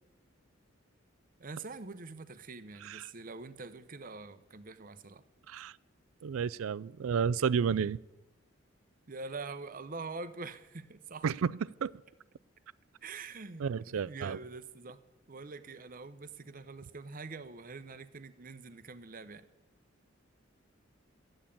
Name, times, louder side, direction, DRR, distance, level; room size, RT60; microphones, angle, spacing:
voice 1, 1.4-5.2 9.1-11.3 13.0-15.0 15.3-19.4, right 3 dB, 40° right, 0.8 m, -44 dB
voice 2, 6.2-8.0 11.2-11.5 11.8-11.9 13.6-14.4, right 6 dB, 85° right, 0.4 m, -31 dB
13.5 x 8.9 x 8.6 m
head